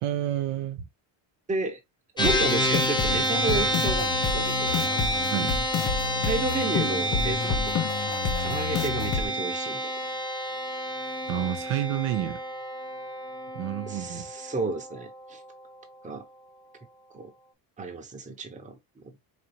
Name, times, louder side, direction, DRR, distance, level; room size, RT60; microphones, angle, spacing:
voice 1, 0.0-0.8 2.2-2.3 5.3-5.5 11.3-12.4 13.5-14.3, right 11 dB, 75° right, 0.9 m, -29 dB
voice 2, 1.5-1.8 2.1-5.2 6.3-10.0 13.9-15.4 16.0-16.2 17.1-17.3 17.8-19.1, right 3 dB, 15° right, 0.9 m, -32 dB
sound 1, 2.2-9.3, left 5 dB, 40° left, 0.9 m, -30 dB
sound 2, 2.2-15.7, equal, 10° left, 0.6 m, -29 dB
4.0 x 2.7 x 2.9 m
cardioid pair, 130°, 48 cm